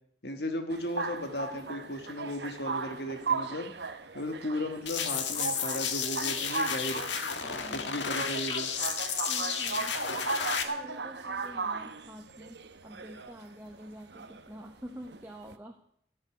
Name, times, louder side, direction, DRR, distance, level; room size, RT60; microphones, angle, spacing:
voice 1, 0.2-3.7 4.1-7.0 7.7-8.7, left 1 dB, 65° left, 6 dB, 1.5 m, -35 dB
sound 1, 0.7-15.5, right 4 dB, 70° right, 1.0 m, -37 dB
sound 2, 4.9-10.6, left 7 dB, 80° left, 1.7 m, -32 dB
voice 2, 7.4-8.0 9.3-10.0 10.6-15.8, equal, 10° right, 3 dB, 1.1 m, -47 dB
14.0 x 8.3 x 9.8 m, 0.69 s
head